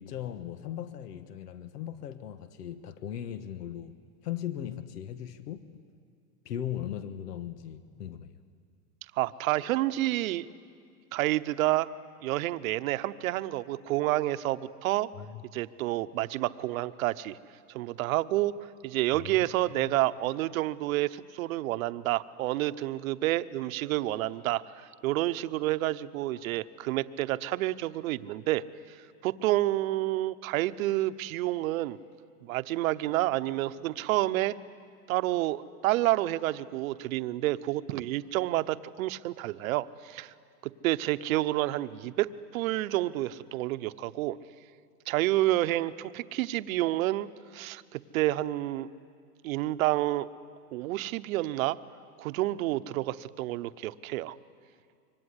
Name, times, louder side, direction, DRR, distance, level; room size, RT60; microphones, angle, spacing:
voice 1, 0.0-3.9 4.2-5.8 6.4-8.3 15.2-15.5 19.1-19.5 19.7-20.0, left 10 dB, 80° left, 11 dB, 1.6 m, -38 dB
voice 2, 9.2-10.5 11.1-11.9 12.2-15.1 15.5-17.4 17.7-18.5 18.8-28.6 29.2-32.0 32.4-34.6 35.1-40.3 40.8-44.4 45.1-48.9 49.4-50.3 50.7-51.8 52.2-54.4, right 16 dB, 60° right, 12 dB, 1.0 m, -29 dB
25.5 x 24.0 x 9.8 m, 2.2 s
supercardioid pair, 135°, 46 cm